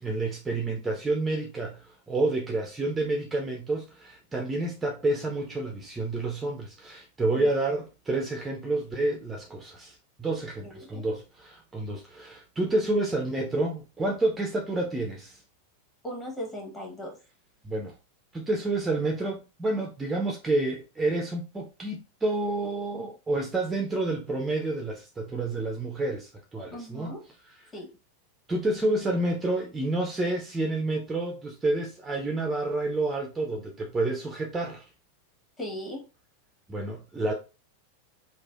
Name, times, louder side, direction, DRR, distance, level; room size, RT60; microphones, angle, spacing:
voice 1, 0.0-15.4 17.6-17.9 18.3-27.1 28.5-34.8 36.7-37.3, right 2 dB, 15° right, 0.4 m, -29 dB
voice 2, 10.6-11.0 16.0-17.2 26.7-27.2 27.7-27.9 35.6-36.0, equal, 15° left, 1.1 m, -38 dB
3.1 x 2.1 x 2.4 m
figure-of-eight pair, 90°, 0 cm